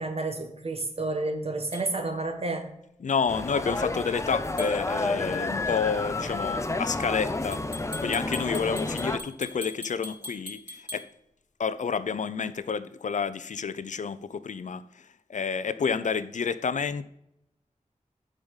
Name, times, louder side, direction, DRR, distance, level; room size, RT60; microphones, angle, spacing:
voice 1, 0.0-2.7, right 2 dB, 50° right, 1.2 m, -30 dB
sound 1, 1.7-1.9 4.6-4.8 7.5-11.1, left 2 dB, 10° right, 2.6 m, -41 dB
voice 2, 3.0-7.6 8.0-11.1 11.6-14.8 15.3-17.0, left 6 dB, 70° left, 0.5 m, -29 dB
sound 2, 3.3-9.2, left 2 dB, 20° left, 0.6 m, -30 dB
7.1 x 5.1 x 5.5 m
wide cardioid pair, 90°, 13 cm